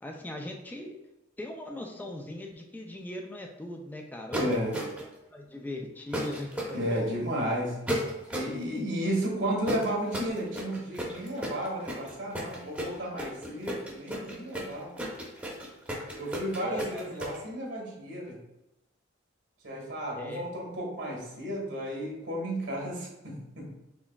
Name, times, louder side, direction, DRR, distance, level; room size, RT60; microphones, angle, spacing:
voice 1, 0.0-1.0 1.4-7.0 16.6-17.2 20.1-20.4, left 1 dB, 10° left, 2 dB, 0.3 m, -39 dB
sound 1, 4.3-5.1 6.1-6.7 7.9-8.6 9.6-17.4, equal, 5° right, 0.8 m, -34 dB
voice 2, 4.4-4.7 6.7-7.8 8.3-15.0 16.1-18.4 19.6-23.7, right 1 dB, 80° right, -2 dB, 1.5 m, -33 dB
4.5 x 3.3 x 2.2 m, 0.95 s
head